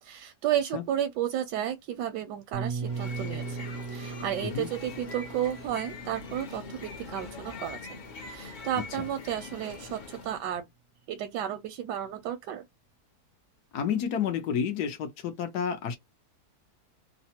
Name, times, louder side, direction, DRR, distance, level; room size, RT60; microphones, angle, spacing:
voice 1, 0.0-3.6 3.9-10.6 11.1-12.6, right 10 dB, 85° right, 1.2 m, -32 dB
sound 1, 2.5-8.3, right 5 dB, 70° right, 0.8 m, -39 dB
sound 2, 2.7-10.4, left 4 dB, 50° left, 0.5 m, -43 dB
voice 2, 13.7-16.0, left 7 dB, 75° left, 1.2 m, -30 dB
3.3 x 2.0 x 2.8 m
omnidirectional pair, 1.8 m